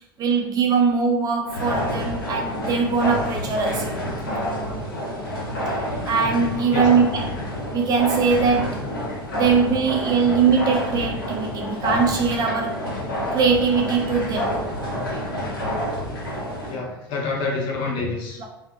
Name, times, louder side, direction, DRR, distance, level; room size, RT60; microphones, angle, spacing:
voice 1, 0.2-3.9 6.0-8.9 9.3-12.9 13.3-14.5 18.4-18.5, right 5 dB, 30° right, 2 dB, 0.5 m, -21 dB
sound 1, 1.5-16.8, equal, 75° left, 0.9 m, -28 dB
voice 2, 16.7-18.4, left 3 dB, 45° left, -2 dB, 0.7 m, -27 dB
2.6 x 2.4 x 2.2 m, 0.89 s
figure-of-eight pair, 80°, 12 cm